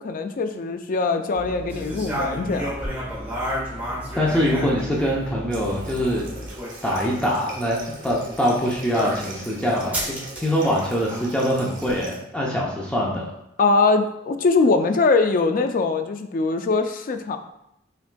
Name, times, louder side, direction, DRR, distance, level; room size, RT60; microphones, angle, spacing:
voice 1, 0.0-3.0 13.6-17.4, left 3 dB, 45° left, 7 dB, 0.4 m, -22 dB
sound 1, 1.3-6.5, left 1 dB, 35° right, 1.1 m, -38 dB
sound 2, 1.7-5.3 6.2-7.1 8.9-9.4 9.9-11.4, equal, 10° right, 1.5 m, -31 dB
voice 2, 4.2-6.3 6.8-13.3, equal, 5° left, -4 dB, 0.6 m, -23 dB
Water tap faucet, 5.5-12.2, right 1 dB, 85° right, 1.4 m, -40 dB
5.8 x 3.6 x 2.2 m, 0.82 s
head